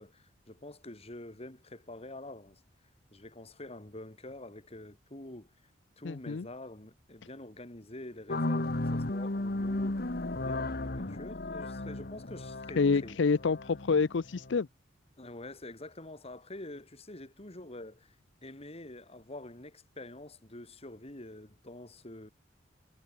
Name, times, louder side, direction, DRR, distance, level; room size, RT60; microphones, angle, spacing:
voice 1, 0.0-2.6 3.1-5.5 6.0-13.2 15.2-18.1 18.4-22.3, left 1 dB, 35° left, 3.2 m, -46 dB
voice 2, 6.0-6.5 12.8-14.7, left 4 dB, 70° left, 0.5 m, -27 dB
sound 1, 8.3-14.6, left 2 dB, 55° left, 1.5 m, -34 dB
head